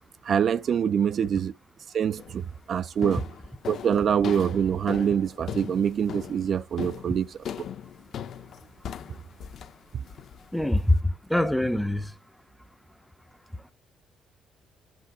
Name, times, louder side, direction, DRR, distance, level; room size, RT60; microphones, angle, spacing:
voice 1, 0.2-1.5 1.9-3.2 3.7-7.4, right 8 dB, 45° right, 0.3 m, -25 dB
sound 1, 2.2-2.5 3.0-11.0, left 9 dB, 55° left, 0.8 m, -39 dB
voice 2, 10.5-12.1, left 1 dB, ahead, 0.7 m, -24 dB
10.0 x 3.5 x 4.9 m
cardioid pair, 155°, 0 cm